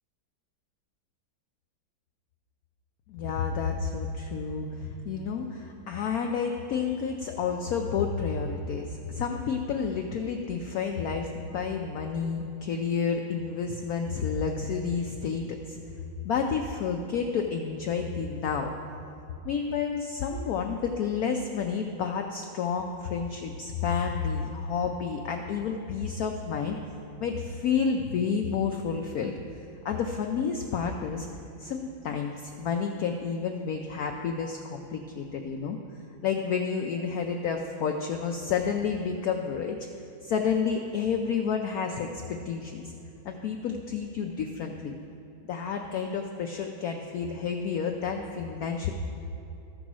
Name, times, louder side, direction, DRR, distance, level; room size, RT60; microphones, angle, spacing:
voice 1, 3.1-15.8 16.2-18.7 19.4-26.8 27.2-29.3 29.8-31.3 31.6-35.8 36.2-39.8 40.2-42.9 43.2-44.9 45.5-48.9, left 6 dB, 90° left, 3 dB, 0.8 m, -30 dB
13.5 x 5.1 x 6.1 m, 2.8 s
omnidirectional pair, 2.2 m